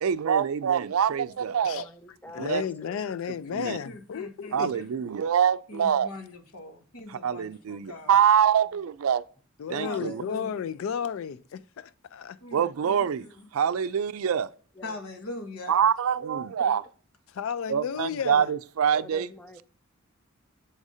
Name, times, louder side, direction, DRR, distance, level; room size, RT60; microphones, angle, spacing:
voice 1, 0.0-1.9 2.4-2.6 3.5-3.8 4.5-6.1 7.1-9.2 9.7-10.2 12.5-13.3 13.5-14.5 15.7-16.8 17.7-19.3, right 8 dB, 85° right, 0.4 m, -25 dB
voice 2, 1.5-3.0 8.4-8.5 10.2-10.3 14.2-14.4 14.8-15.0 16.4-16.7 18.9-19.6, left 1 dB, 10° left, 0.4 m, -48 dB
voice 3, 2.3-4.8 9.6-12.4 17.3-18.5, left 7 dB, 70° left, 0.4 m, -33 dB
voice 4, 3.6-4.8 5.7-8.2 9.8-10.6 12.4-13.5 14.8-15.8, left 2 dB, 90° left, 1.1 m, -41 dB
7.1 x 2.7 x 4.8 m
head